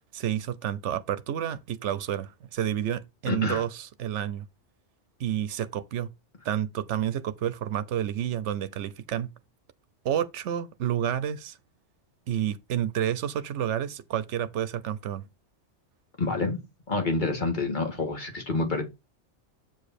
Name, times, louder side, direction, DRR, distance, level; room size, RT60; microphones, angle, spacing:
voice 1, 0.1-4.4 5.2-6.1 6.4-9.3 10.0-11.6 12.3-15.3, right 10 dB, 85° right, 1.0 m, -30 dB
voice 2, 3.3-3.6 16.2-16.6 16.9-18.8, left 3 dB, 45° left, 2.0 m, -27 dB
7.9 x 5.0 x 4.2 m
omnidirectional pair, 1.2 m